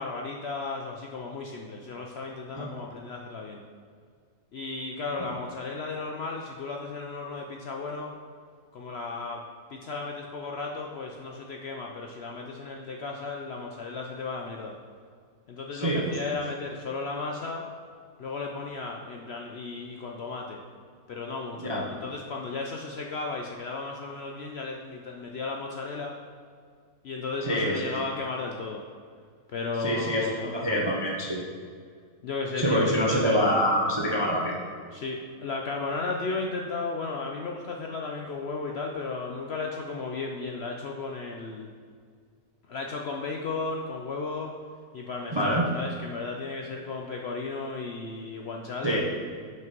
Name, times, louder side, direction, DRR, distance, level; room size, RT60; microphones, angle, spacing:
voice 1, 0.0-3.6 4.5-8.1 8.7-9.4 9.7-14.8 15.5-17.7 18.2-20.6 21.1-26.2 27.0-28.8 29.5-30.5 32.2-32.9 34.9-41.7 42.7-44.6 44.9-49.0, left 3 dB, 65° left, 1 dB, 0.7 m, -34 dB
voice 2, 15.7-16.4 21.6-21.9 27.4-27.9 29.8-31.5 32.6-34.6 45.3-45.7 48.8-49.0, equal, 35° right, -2 dB, 0.4 m, -26 dB
6.2 x 5.6 x 5.2 m, 2.1 s
omnidirectional pair, 1.6 m